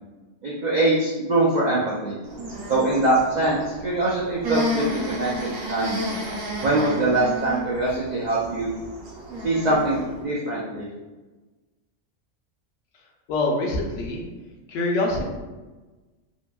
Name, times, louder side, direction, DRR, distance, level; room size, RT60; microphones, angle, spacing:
voice 1, 0.4-2.2 2.7-6.1 6.6-8.7 9.4-10.9, right 2 dB, 85° right, -6 dB, 0.3 m, -23 dB
sound 1, 2.2-10.2, left 1 dB, 65° right, 0.9 m, -32 dB
voice 2, 13.3-14.2 14.7-15.2, left 2 dB, 70° left, -1 dB, 0.9 m, -24 dB
2.8 x 2.5 x 2.2 m, 1.2 s
omnidirectional pair, 1.3 m